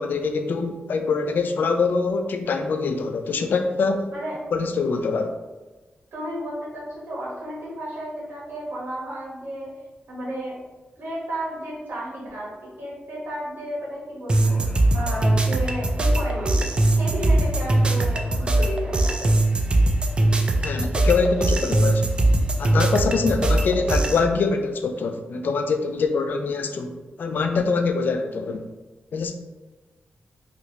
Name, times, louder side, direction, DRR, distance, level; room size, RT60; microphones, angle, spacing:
voice 1, 0.0-4.1 4.5-5.3 20.6-22.0 22.6-28.6 29.1-29.3, left 4 dB, 70° left, 6 dB, 0.3 m, -24 dB
voice 2, 6.1-9.7 10.1-10.6 11.0-19.4, right 1 dB, 85° right, -5 dB, 1.2 m, -33 dB
sound 1, 14.3-24.2, right 2 dB, 30° right, 0.3 m, -21 dB
3.2 x 2.5 x 2.9 m, 1.2 s
wide cardioid pair, 135°, 3 cm